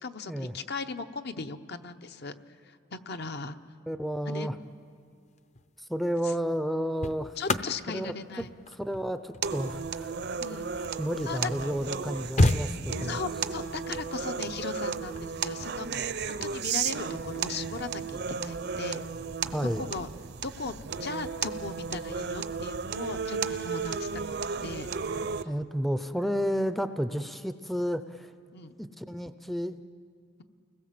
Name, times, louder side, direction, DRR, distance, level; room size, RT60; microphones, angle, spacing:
voice 1, 0.0-2.4 2.6-3.6 4.3-4.5 6.2-6.3 7.4-8.5 10.4-10.7 11.3-11.5 13.0-19.0 19.8-20.1 20.4-24.1 24.6-24.9 28.5-28.7, left 4 dB, 55° left, 8 dB, 1.0 m, -38 dB
voice 2, 3.9-4.6 5.8-7.4 7.9-8.1 8.7-10.1 10.5-13.2 19.4-19.9 25.4-28.3 28.8-29.8, equal, ahead, 10 dB, 0.5 m, -31 dB
sound 1, 5.4-5.7 6.6-11.2 11.7-11.8 12.0-13.3 14.9-15.2, left 1 dB, 35° left, 0.7 m, -30 dB
sound 2, 9.4-25.4, right 6 dB, 55° right, 0.7 m, -34 dB
30.0 x 20.5 x 7.6 m, 2.3 s
head